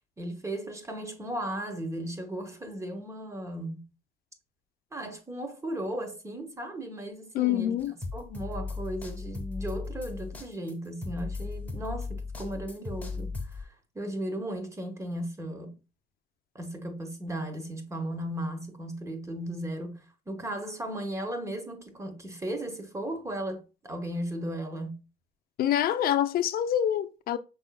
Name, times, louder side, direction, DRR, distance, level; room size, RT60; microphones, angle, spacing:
voice 1, 0.2-3.8 4.9-7.8 8.1-15.7 16.5-24.9, right 1 dB, 15° right, 1.2 m, -36 dB
voice 2, 7.3-7.9 25.6-27.4, left 11 dB, 60° left, 0.5 m, -26 dB
sound 1, 7.8-13.6, left 4 dB, 10° left, 1.2 m, -37 dB
5.5 x 3.7 x 2.2 m
cardioid pair, 110°, 17 cm